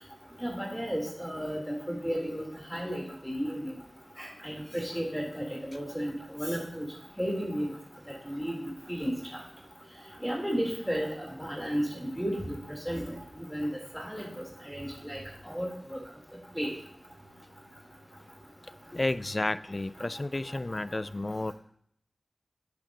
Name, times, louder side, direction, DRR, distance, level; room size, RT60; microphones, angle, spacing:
voice 1, 0.4-2.4 2.7-3.7 4.2-6.9 7.2-7.7 8.3-9.1 10.2-12.6 12.9-13.0 13.5-13.7 13.9-15.2 15.4-16.0 16.6-16.7, equal, ahead, -2 dB, 2.6 m, -33 dB
voice 2, 18.9-21.5, left 2 dB, 35° left, 15 dB, 0.3 m, -31 dB
10.5 x 8.9 x 2.5 m, 0.68 s
wide cardioid pair, 50°, 0 cm